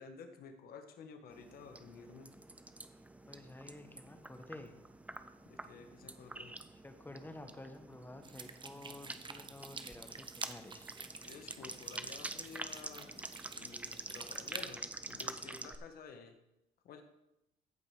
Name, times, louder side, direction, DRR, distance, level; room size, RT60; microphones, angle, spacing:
voice 1, 0.0-2.3 5.4-6.5 11.2-16.4 16.8-17.0, left 5 dB, 60° left, 6 dB, 1.4 m, -52 dB
sound 1, 1.3-15.8, right 2 dB, 10° right, 0.6 m, -47 dB
voice 2, 3.3-4.7 6.8-10.9, left 2 dB, 10° left, 7 dB, 1.2 m, -51 dB
sound 2, 8.2-14.7, right 5 dB, 30° right, 0.9 m, -50 dB
15.0 x 5.2 x 4.9 m, 0.88 s
cardioid pair, 110°, 17 cm